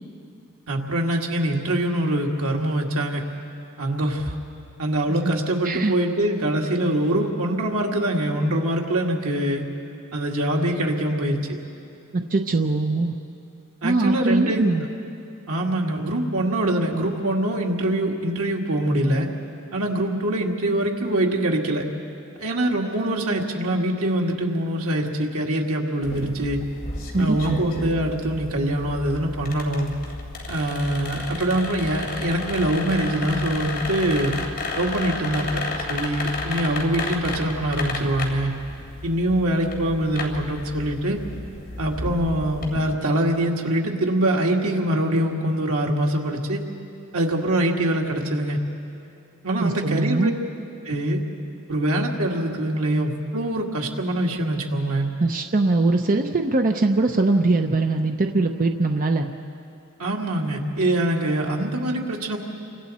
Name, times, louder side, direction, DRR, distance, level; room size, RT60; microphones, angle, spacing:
voice 1, 0.7-3.2 3.8-4.4 4.8-9.7 10.1-11.4 13.8-14.7 15.5-19.3 19.7-21.8 22.4-26.6 27.2-29.9 30.5-34.3 34.8-38.5 39.0-41.2 41.8-46.6 47.1-48.6 49.4-50.3 50.8-51.2 51.7-55.1 60.0-62.4, right 1 dB, 85° right, 0 dB, 2.2 m, -24 dB
voice 2, 5.6-5.9 12.1-13.1 13.8-14.9 27.1-27.6 49.6-50.3 55.2-59.3, right 2 dB, 40° right, 4 dB, 0.7 m, -21 dB
sound 1, 26.0-42.9, left 2 dB, 45° left, 3.1 m, -32 dB
29.0 x 25.0 x 4.2 m, 2.7 s
head